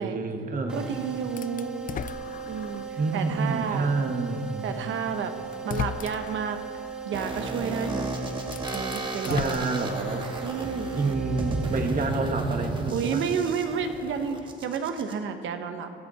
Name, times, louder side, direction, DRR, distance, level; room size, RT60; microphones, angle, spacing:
voice 1, 0.0-0.9 3.0-4.7 9.3-10.3 11.0-13.3, right 3 dB, 45° right, 4 dB, 1.8 m, -28 dB
sound 1, 0.7-12.4, right 6 dB, 5° right, 3.5 m, -38 dB
voice 2, 0.7-1.7 2.5-3.9 4.6-5.3 5.6-6.6 7.0-8.1 8.7-9.7 10.4-11.0 12.9-16.0, right 6 dB, 75° right, 7 dB, 1.2 m, -31 dB
sound 2, 1.4-3.0 3.5-3.6 4.8-4.9 5.5-6.5 7.9-8.0 8.4-10.4, left 8 dB, 45° left, 0.4 m, -36 dB
sound 3, 7.1-15.1, right 2 dB, 25° right, 1.9 m, -34 dB
18.0 x 13.0 x 4.3 m, 2.6 s
cardioid pair, 90°, 20 cm